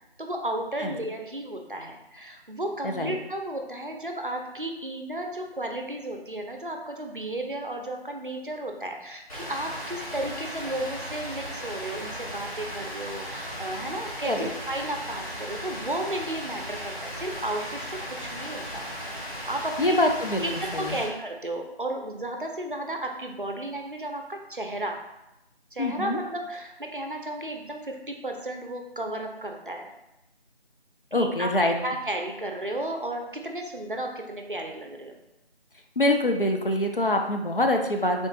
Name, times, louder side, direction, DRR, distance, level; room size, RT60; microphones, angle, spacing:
voice 1, 0.2-18.8 19.5-20.0 20.4-25.0 25.7-29.9 31.1-31.5 31.8-35.2, right 1 dB, 55° right, 3 dB, 0.5 m, -33 dB
voice 2, 2.8-3.2 14.2-14.5 19.8-20.4 20.7-20.9 25.8-26.2 31.1-31.7 36.0-38.3, left 1 dB, 55° left, 3 dB, 0.5 m, -24 dB
Rain, 9.3-21.0, equal, 35° left, 1.1 m, -36 dB
3.7 x 2.6 x 3.7 m, 0.92 s
figure-of-eight pair, 175°, 32 cm